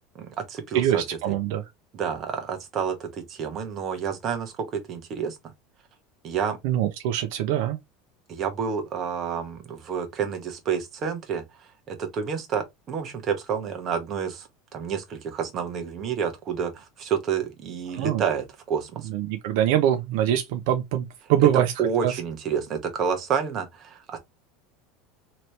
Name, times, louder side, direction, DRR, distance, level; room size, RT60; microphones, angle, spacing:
voice 1, 0.2-1.2 1.9-5.4 6.2-6.6 8.3-19.1 21.8-24.2, right 7 dB, 35° right, 1.0 m, -29 dB
voice 2, 0.7-1.6 6.6-7.8 17.9-18.2 19.1-21.7 22.0-22.1, right 11 dB, 70° right, 0.5 m, -23 dB
3.1 x 3.0 x 2.8 m
supercardioid pair, 145°, 0 cm